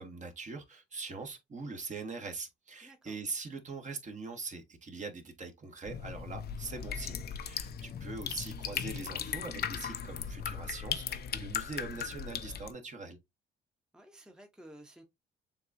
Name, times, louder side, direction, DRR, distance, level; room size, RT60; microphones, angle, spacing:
voice 1, 0.0-13.2, right 4 dB, 40° right, 1.2 m, -42 dB
voice 2, 2.8-3.2 7.7-7.9 13.9-15.0, right 1 dB, 5° right, 0.9 m, -54 dB
sound 1, 5.9-12.7, left 8 dB, 55° left, 0.6 m, -38 dB
7.0 x 2.4 x 2.6 m
cardioid pair, 90°, 20 cm